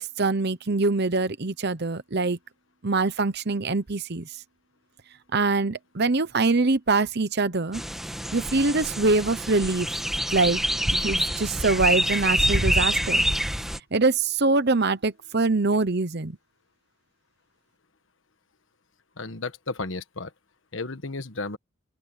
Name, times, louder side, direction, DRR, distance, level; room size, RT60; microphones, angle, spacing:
voice 1, 0.0-2.4 2.8-4.3 5.3-7.8 8.3-9.9 10.3-10.6 10.9-13.2 13.9-16.4, right 3 dB, 50° right, 0.9 m, -24 dB
sound 1, 7.7-13.8, equal, ahead, 1.5 m, -26 dB
voice 2, 19.2-20.3 20.7-21.6, left 3 dB, 65° left, 1.3 m, -33 dB
open air
head